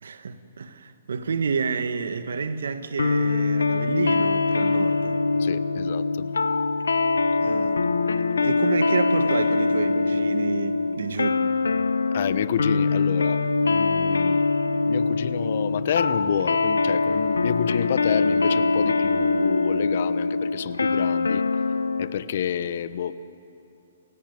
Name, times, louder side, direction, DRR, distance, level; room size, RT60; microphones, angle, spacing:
voice 1, 0.0-5.2 7.4-7.8 8.4-11.5, right 5 dB, 75° right, 1.6 m, -29 dB
sound 1, 3.0-22.1, left 3 dB, 85° left, 1.1 m, -23 dB
voice 2, 5.4-6.3 12.1-14.4 14.8-21.5 22.0-23.1, left 9 dB, 55° left, 1.0 m, -29 dB
28.5 x 17.0 x 9.6 m
hypercardioid pair, 130°, 0 cm